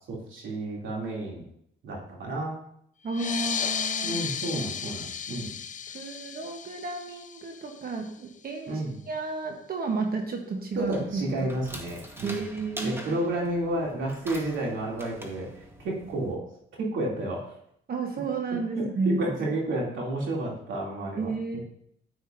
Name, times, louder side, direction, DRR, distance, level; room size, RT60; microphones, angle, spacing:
voice 1, 0.1-1.4 1.8-2.6 4.0-5.5 8.7-9.0 10.7-12.5 12.8-16.4 16.8-17.4 18.7-21.6, right 1 dB, 75° right, -3 dB, 2.8 m, -31 dB
voice 2, 3.0-4.2 5.9-11.5 12.2-13.2 17.9-19.2 21.2-21.6, right 4 dB, 50° right, 3 dB, 1.2 m, -32 dB
sound 1, 3.1-8.2, left 7 dB, 40° left, 0.5 m, -34 dB
sound 2, 10.7-16.4, equal, 10° right, 1.4 m, -44 dB
9.6 x 8.3 x 2.6 m, 0.70 s
cardioid pair, 90°, 20 cm